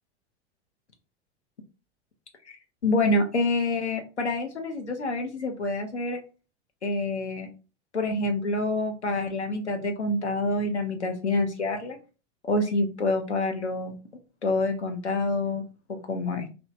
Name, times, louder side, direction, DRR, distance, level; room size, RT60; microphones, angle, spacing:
voice 1, 2.8-6.2 6.8-7.5 7.9-12.0 12.4-14.0 14.4-15.6 15.9-16.5, left 2 dB, 90° left, 4 dB, 0.5 m, -27 dB
2.9 x 2.0 x 2.4 m, 0.33 s
figure-of-eight pair, 90°, 33 cm